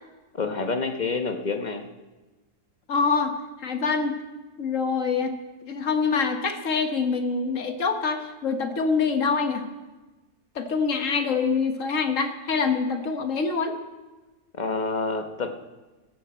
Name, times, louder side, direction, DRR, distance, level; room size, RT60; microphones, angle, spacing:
voice 1, 0.3-1.8 14.5-15.5, left 4 dB, 35° left, 6 dB, 1.0 m, -28 dB
voice 2, 2.9-3.3 3.6-4.1 4.6-5.3 5.6-9.6 10.5-13.8, left 5 dB, 60° left, 6 dB, 1.6 m, -25 dB
16.5 x 14.0 x 4.3 m, 1.2 s
omnidirectional pair, 1.5 m